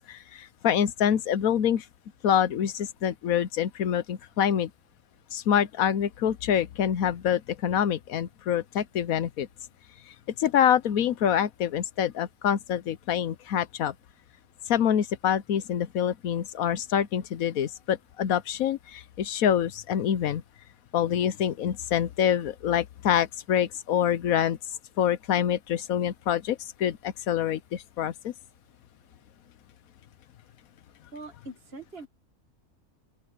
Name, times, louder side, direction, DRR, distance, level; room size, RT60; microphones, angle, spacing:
voice 1, 0.1-1.8 2.2-4.7 5.3-9.5 10.4-13.9 14.7-20.4 20.9-24.6 25.0-28.3, left 9 dB, 70° left, 1.2 m, -26 dB
voice 2, 31.1-32.1, right 2 dB, 40° right, 2.0 m, -42 dB
open air
omnidirectional pair, 1.6 m